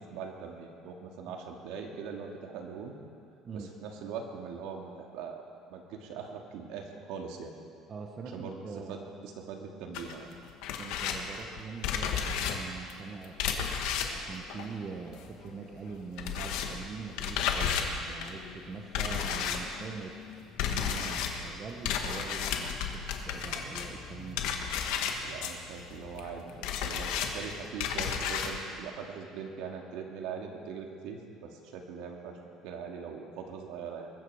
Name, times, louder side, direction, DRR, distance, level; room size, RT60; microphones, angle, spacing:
voice 1, 0.0-3.0 3.5-5.4 5.7-7.5 8.3-10.3 25.2-26.5 26.8-32.4 32.6-34.1, right 6 dB, 80° right, 2 dB, 2.2 m, -41 dB
voice 2, 7.9-9.1 10.8-13.8 14.2-20.2 20.6-24.5, right 5 dB, 25° right, 3 dB, 1.0 m, -43 dB
sound 1, 9.9-15.5 15.7-28.6, left 7 dB, 80° left, 1.5 m, -33 dB
22.0 x 13.5 x 4.9 m, 2.3 s
cardioid pair, 170°, 0 cm